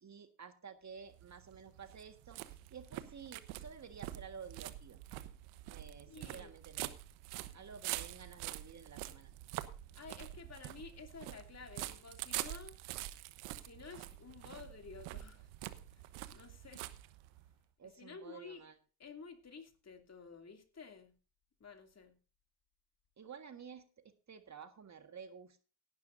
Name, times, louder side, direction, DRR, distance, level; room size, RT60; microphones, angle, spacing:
voice 1, 0.0-2.4 2.7-5.0 5.7-6.9 7.5-9.3 17.8-18.8 23.2-25.6, right 6 dB, 35° right, 8 dB, 1.7 m, -52 dB
sound 1, 1.0-17.5, right 16 dB, 75° right, 1.2 m, -46 dB
voice 2, 6.1-6.5 9.9-12.7 13.6-15.5 15.9-16.1 16.3-16.9 18.0-18.6 19.0-21.1 21.6-22.2, left 5 dB, 30° left, 5 dB, 2.8 m, -52 dB
17.0 x 11.5 x 2.6 m, 0.34 s
hypercardioid pair, 65°, 49 cm